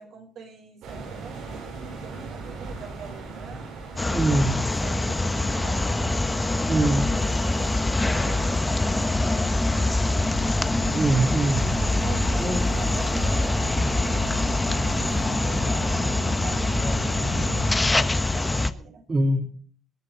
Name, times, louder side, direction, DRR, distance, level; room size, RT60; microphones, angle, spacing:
voice 1, 0.0-7.3 8.0-10.4 12.0-17.5 17.8-19.0, right 5 dB, 75° right, 3 dB, 6.2 m, -44 dB
sound 1, 0.8-17.7, right 3 dB, 90° right, 7.4 m, -35 dB
sound 2, 4.0-18.7, left 2 dB, 15° left, 1.1 m, -24 dB
voice 2, 4.1-4.6 6.6-7.2 10.9-11.7 12.4-12.7 15.0-15.2 19.1-19.5, right 2 dB, 35° right, 2 dB, 3.4 m, -23 dB
21.0 x 10.0 x 4.0 m, 0.43 s
cardioid pair, 90°, 0 cm